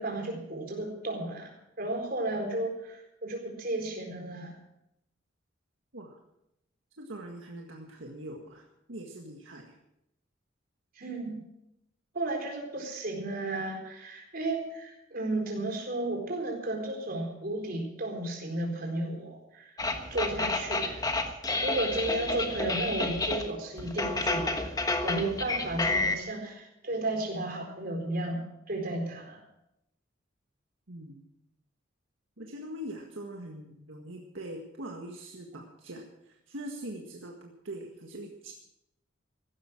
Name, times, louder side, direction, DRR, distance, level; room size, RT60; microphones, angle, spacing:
voice 1, 0.0-4.6 11.0-11.4 12.1-19.7 20.1-21.3 21.6-24.8 25.0-29.4, right 2 dB, 50° right, 2 dB, 4.2 m, -33 dB
voice 2, 7.0-9.8 30.9-31.2 32.4-38.5, right 1 dB, 80° right, 1 dB, 1.8 m, -42 dB
sound 1, 19.8-23.5 23.8-26.2, left 2 dB, 20° left, 1.2 m, -30 dB
16.0 x 12.5 x 6.1 m, 0.82 s
head